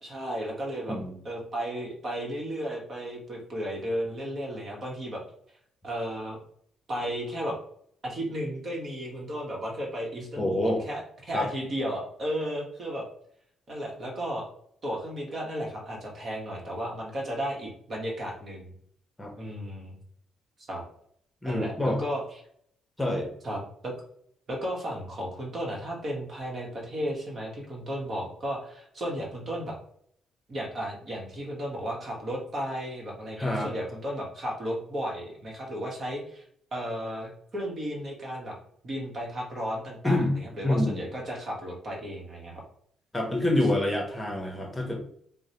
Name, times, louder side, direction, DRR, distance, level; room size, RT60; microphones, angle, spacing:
voice 1, 0.0-1.0 1.2-5.2 5.8-6.4 6.9-7.6 8.0-13.1 13.7-14.4 14.8-18.7 19.4-20.0 20.7-20.8 21.4-22.2 23.4-23.9 24.5-29.8 30.5-36.4 36.7-38.6 38.8-42.6, equal, 45° right, -1 dB, 1.1 m, -34 dB
voice 2, 10.4-10.8 11.3-11.5 19.2-19.3 21.4-22.0 23.0-23.3 33.4-33.7 40.0-40.3 40.6-41.0 43.1-45.0, left 1 dB, 10° left, 1 dB, 0.9 m, -26 dB
4.6 x 2.1 x 2.8 m, 0.64 s
cardioid pair, 90°, 0 cm